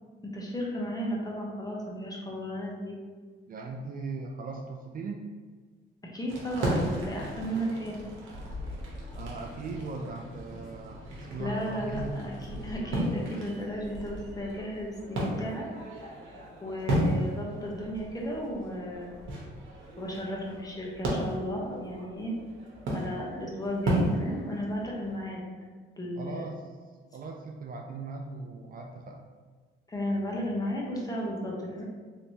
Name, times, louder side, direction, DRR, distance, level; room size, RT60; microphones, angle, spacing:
voice 1, 0.2-3.0 6.1-8.0 11.4-12.3 12.6-15.7 16.6-19.2 20.0-22.3 22.9-25.5 26.0-26.4 29.9-31.8, equal, 20° left, -3 dB, 0.8 m, -34 dB
voice 2, 3.5-5.2 9.1-12.2 26.2-26.7 27.1-29.3, right 3 dB, 45° right, 3 dB, 0.4 m, -39 dB
sound 1, 6.3-25.2, right 1 dB, 75° right, 0.9 m, -35 dB
3.3 x 2.9 x 2.7 m, 1.5 s
cardioid pair, 90°, 20 cm